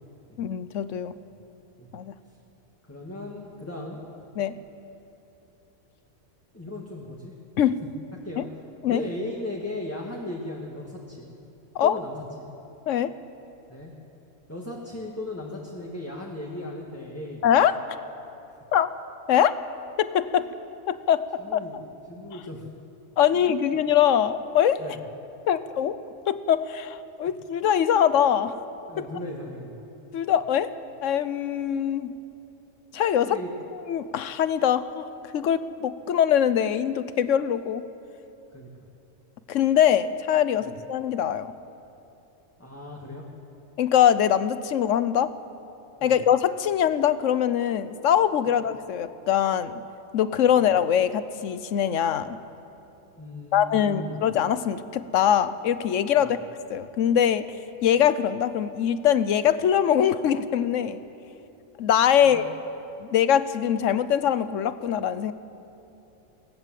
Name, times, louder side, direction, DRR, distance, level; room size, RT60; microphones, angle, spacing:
voice 1, 0.4-1.1 1.9-2.1 4.4-4.5 7.6-7.8 8.4-8.5 8.8-9.0 11.7-12.0 12.9-13.1 17.4-17.7 18.7-18.9 19.3-19.6 20.0-20.4 20.9-21.3 21.5-21.6 23.2-24.8 25.5-26.0 26.3-28.5 30.1-30.7 31.0-32.1 32.9-33.4 33.9-35.0 35.3-37.8 39.5-41.5 43.8-45.3 46.0-49.8 50.1-52.4 53.5-56.4 56.7-57.5 57.8-61.0 61.8-62.5 63.0-65.3, left 9 dB, 80° left, 14 dB, 1.1 m, -22 dB
voice 2, 2.8-4.0 6.5-7.3 8.2-8.5 8.9-11.3 11.8-12.5 13.7-13.9 14.5-17.4 20.4-20.5 21.4-21.8 22.1-22.7 23.3-23.5 24.8-25.0 28.9-29.9 33.2-33.5 38.5-38.7 40.6-40.7 42.6-43.3 46.0-46.2 48.5-48.6 50.5-50.6 53.2-54.3 56.2-56.3 62.2-62.4, left 1 dB, 10° left, -2 dB, 1.8 m, -37 dB
20.0 x 18.0 x 7.6 m, 2.9 s
omnidirectional pair, 1.3 m